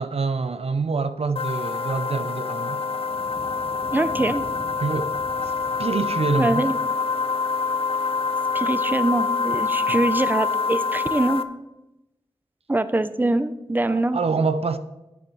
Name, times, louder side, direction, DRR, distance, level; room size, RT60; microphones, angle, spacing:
voice 1, 0.0-2.8 4.8-5.1 5.4-5.5 5.8-6.7 9.9-10.1 13.9-14.8, right 4 dB, 70° right, 0.6 m, -26 dB
sound 1, 1.4-11.4, left 4 dB, 65° left, 0.6 m, -26 dB
sound 2, 2.8-9.1 9.7-9.8 11.3-11.4, left 1 dB, 40° left, 2.0 m, -44 dB
voice 2, 3.9-4.4 6.4-6.7 8.5-11.4 12.7-14.2, right 2 dB, 20° right, 0.6 m, -23 dB
9.5 x 7.7 x 6.2 m
wide cardioid pair, 60°, 11 cm